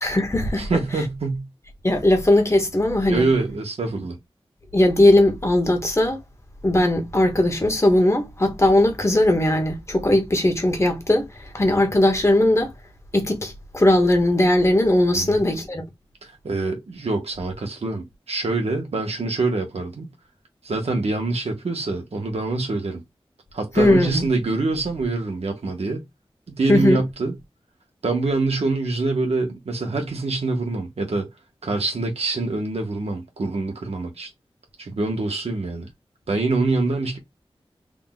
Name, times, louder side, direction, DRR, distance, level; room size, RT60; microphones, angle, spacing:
voice 1, 0.0-0.7 1.8-3.2 4.7-6.2 6.6-12.7 13.1-15.8 23.8-24.2 26.7-27.0, left 1 dB, 30° left, 1.2 m, -19 dB
voice 2, 0.6-1.5 3.1-4.2 15.1-15.4 16.2-20.1 20.6-23.0 23.5-26.0 26.5-27.4 28.0-31.3 31.6-34.3 34.8-35.9 36.3-37.2, right 3 dB, 85° right, 1.3 m, -25 dB
3.7 x 2.4 x 3.9 m
wide cardioid pair, 80°, 10 cm